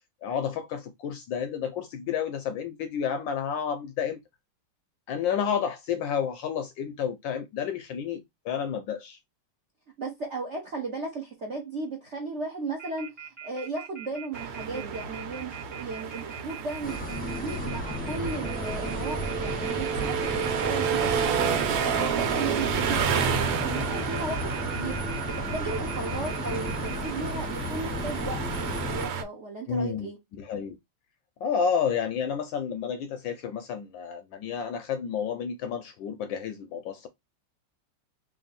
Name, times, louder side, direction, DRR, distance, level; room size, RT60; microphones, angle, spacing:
voice 1, 0.2-4.2 5.1-9.2 29.7-30.1 30.4-30.8 31.4-37.1, left 7 dB, 75° left, 1.1 m, -30 dB
voice 2, 10.0-30.2, right 3 dB, 60° right, 0.7 m, -36 dB
Telephone, 12.8-27.1, right 8 dB, 35° right, 1.3 m, -42 dB
sound 1, 14.3-29.2, right 7 dB, 90° right, 1.7 m, -30 dB
sound 2, 16.8-29.1, left 1 dB, 5° left, 0.7 m, -34 dB
3.5 x 2.6 x 4.0 m
omnidirectional pair, 2.4 m